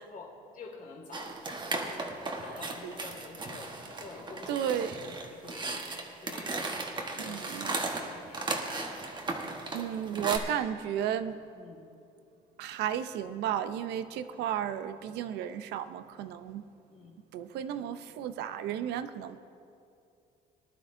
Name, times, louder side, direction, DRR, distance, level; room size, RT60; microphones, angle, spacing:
voice 1, 0.0-1.4 2.3-5.8 6.2-6.6 7.1-8.8 11.5-12.0 16.9-17.2, left 4 dB, 50° left, 1 dB, 2.0 m, -48 dB
sound 1, 1.1-10.4, right 3 dB, 25° right, 1.3 m, -36 dB
voice 2, 4.5-5.0 7.2-7.9 9.2-9.4 9.7-11.4 12.6-16.6 17.3-19.4, right 10 dB, 85° right, 11 dB, 0.6 m, -33 dB
19.5 x 11.5 x 2.6 m, 2.5 s
cardioid pair, 110°, 17 cm